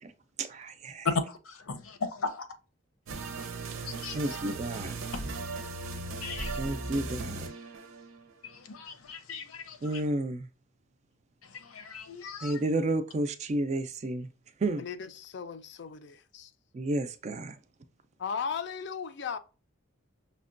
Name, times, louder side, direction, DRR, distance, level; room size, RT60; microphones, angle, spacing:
voice 1, 0.4-1.1 4.1-5.0 6.6-7.5 9.8-10.5 12.4-14.3 14.6-14.8 16.7-17.6, right 2 dB, 35° right, 0.3 m, -31 dB
voice 2, 1.0-2.5 3.8-4.4 6.2-6.6 8.4-10.0 11.4-12.6, left 4 dB, 90° left, 0.7 m, -36 dB
sound 1, 3.1-8.3, right 3 dB, 80° right, 0.6 m, -37 dB
voice 3, 14.8-16.5 18.2-19.4, left 6 dB, 55° left, 0.3 m, -36 dB
5.7 x 2.1 x 2.5 m
head